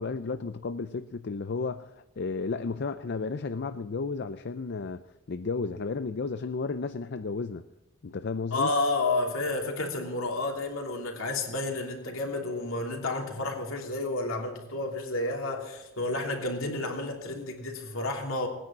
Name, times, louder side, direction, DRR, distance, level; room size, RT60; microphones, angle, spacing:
voice 1, 0.0-7.6 8.0-8.7, left 4 dB, 50° left, 0.5 m, -33 dB
voice 2, 8.5-18.5, left 2 dB, 70° left, 2.9 m, -31 dB
19.0 x 9.9 x 7.4 m
head